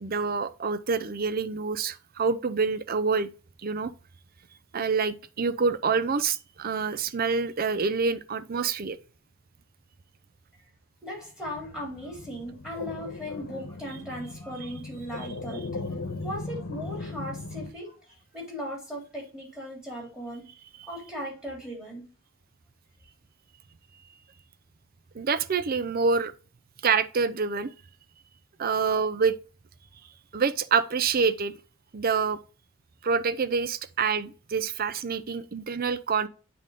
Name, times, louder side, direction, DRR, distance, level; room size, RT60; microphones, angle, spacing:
voice 1, 0.0-3.3 3.6-3.9 4.7-9.0 20.8-20.9 25.1-26.3 26.8-27.7 28.6-29.4 30.3-31.5 31.9-32.4 33.0-36.3, right 5 dB, 45° right, 0.5 m, -26 dB
voice 2, 11.0-15.9 16.2-17.9 18.3-20.4 20.9-22.1, equal, 5° right, 3.2 m, -38 dB
sound 1, 11.4-17.7, left 3 dB, 80° left, 1.1 m, -38 dB
8.6 x 3.8 x 3.7 m
head